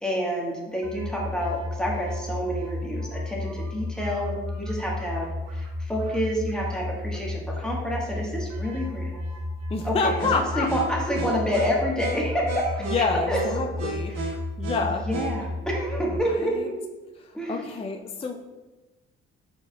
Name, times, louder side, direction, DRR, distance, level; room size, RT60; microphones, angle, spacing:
voice 1, 0.0-9.1 9.8-13.4 13.7-13.8 14.1-14.3 15.0-16.8 17.3-17.7, equal, ahead, -3 dB, 1.4 m, -28 dB
sound 1, 0.8-16.2, left 1 dB, 60° right, 0.9 m, -32 dB
voice 2, 9.7-10.7 12.8-14.2 14.6-15.1 16.1-16.7 17.2-18.4, left 4 dB, 20° left, 2 dB, 0.4 m, -28 dB
4.7 x 4.1 x 2.3 m, 1.2 s
supercardioid pair, 55°, 30 cm